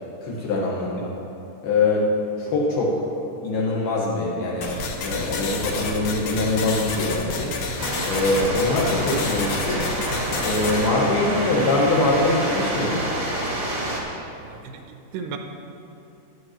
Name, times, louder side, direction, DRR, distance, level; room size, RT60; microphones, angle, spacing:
voice 1, 0.2-1.1 1.6-2.1 2.4-2.9 3.4-7.5 8.0-9.9 10.4-13.1, left 2 dB, 70° left, -5 dB, 3.1 m, -23 dB
sound 1, 4.6-10.9, left 3 dB, 85° left, 1.7 m, -29 dB
sound 2, 7.8-14.0, right 1 dB, 50° right, 0.9 m, -28 dB
voice 2, 14.4-15.4, right 6 dB, 85° right, 4 dB, 2.0 m, -36 dB
16.5 x 11.0 x 3.0 m, 2.8 s
omnidirectional pair, 5.0 m